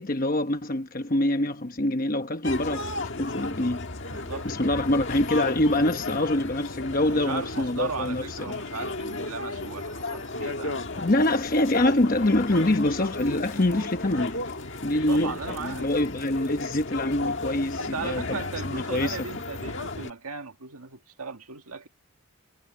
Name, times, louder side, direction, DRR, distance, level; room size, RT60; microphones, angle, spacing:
voice 1, 0.0-3.9 4.4-8.2 11.0-14.4 14.8-18.4 18.6-19.2, left 1 dB, 40° left, 1.0 m, -25 dB
sound 1, 2.4-20.1, left 2 dB, 55° left, 1.8 m, -34 dB
voice 2, 4.1-4.5 6.9-10.9 15.1-15.9 17.8-21.9, right 4 dB, 85° right, 1.7 m, -37 dB
head